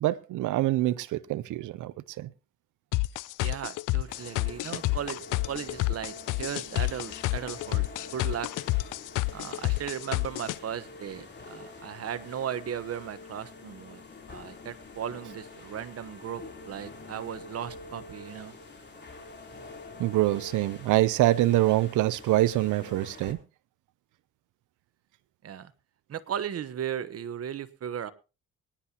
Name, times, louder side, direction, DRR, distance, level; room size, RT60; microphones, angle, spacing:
voice 1, 0.0-2.3 20.0-23.4, right 16 dB, 80° right, 0.6 m, -25 dB
sound 1, 2.9-10.6, left 20 dB, 90° left, 0.6 m, -29 dB
voice 2, 3.4-7.9 8.1-8.5 9.3-18.6 25.4-25.7 26.1-28.1, right 9 dB, 50° right, 1.1 m, -36 dB
sound 2, 4.1-23.3, left 3 dB, 35° left, 3.5 m, -46 dB
24.0 x 10.0 x 2.9 m
cardioid pair, 90°, 30 cm